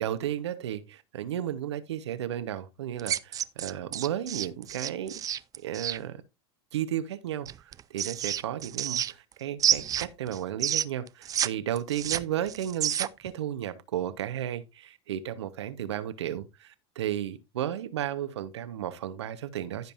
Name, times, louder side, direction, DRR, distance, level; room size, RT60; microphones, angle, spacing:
voice 1, 0.0-5.2 5.6-6.2 6.7-19.9, right 11 dB, 85° right, 1.2 m, -33 dB
sound 1, 3.0-6.0 7.5-9.3 9.6-11.5 11.8-13.3, right 10 dB, 25° right, 0.5 m, -29 dB
15.0 x 5.4 x 2.6 m
supercardioid pair, 120°, 14 cm